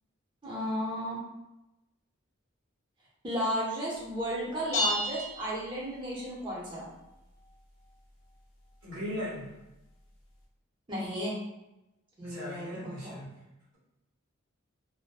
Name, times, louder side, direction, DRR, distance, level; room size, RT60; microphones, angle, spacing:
voice 1, 0.4-1.2 3.2-6.9 10.9-11.4 12.2-13.1, equal, 20° right, -5 dB, 0.6 m, -34 dB
sound 1, 4.7-6.3, left 1 dB, 70° left, 0.7 m, -32 dB
voice 2, 8.8-9.5 12.2-13.3, left 1 dB, 55° right, -9 dB, 1.1 m, -38 dB
2.5 x 2.1 x 2.3 m, 0.95 s
head